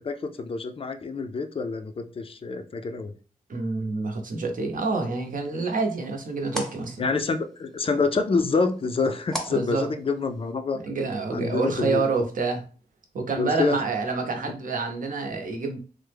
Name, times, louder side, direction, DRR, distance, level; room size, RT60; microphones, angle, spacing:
voice 1, 0.0-3.1 7.0-10.8 11.3-12.0 13.4-13.8, left 4 dB, 40° left, 8 dB, 0.4 m, -27 dB
voice 2, 3.5-7.0 9.5-9.9 10.7-12.7 13.1-15.8, right 3 dB, 60° right, 3 dB, 0.7 m, -28 dB
sound 1, 5.1-10.5, equal, 5° left, 0.7 m, -41 dB
3.3 x 2.1 x 3.3 m, 0.37 s
wide cardioid pair, 125°, 15 cm